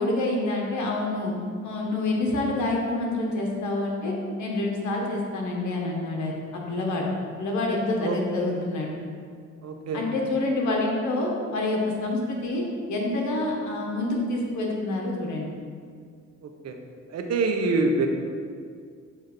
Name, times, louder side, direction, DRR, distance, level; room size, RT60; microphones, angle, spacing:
voice 1, 0.0-1.3 1.6-4.1 4.4-6.3 6.7-7.1 7.4-8.9 9.9-12.6 12.9-15.5, left 2 dB, 70° left, -1 dB, 1.3 m, -27 dB
voice 2, 8.0-8.6 9.6-10.0 16.4-16.7 17.1-18.1, right 3 dB, 60° right, 4 dB, 0.8 m, -26 dB
7.3 x 2.7 x 5.2 m, 2.1 s
cardioid pair, 90°, 30 cm